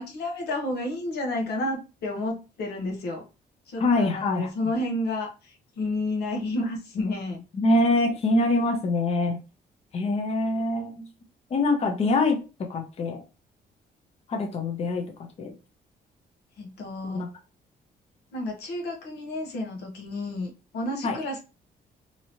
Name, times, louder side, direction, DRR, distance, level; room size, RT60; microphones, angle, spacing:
voice 1, 0.0-3.3 3.7-7.4 16.6-17.2 18.3-21.4, left 1 dB, 85° left, 0.9 m, -31 dB
voice 2, 3.8-4.5 7.5-9.4 9.9-11.1 11.5-12.4 12.7-13.2 14.3-15.0 15.4-15.5 17.0-17.3 21.0-21.2, left 2 dB, 40° left, 0.7 m, -24 dB
3.0 x 2.8 x 2.8 m
cardioid pair, 145°, 17 cm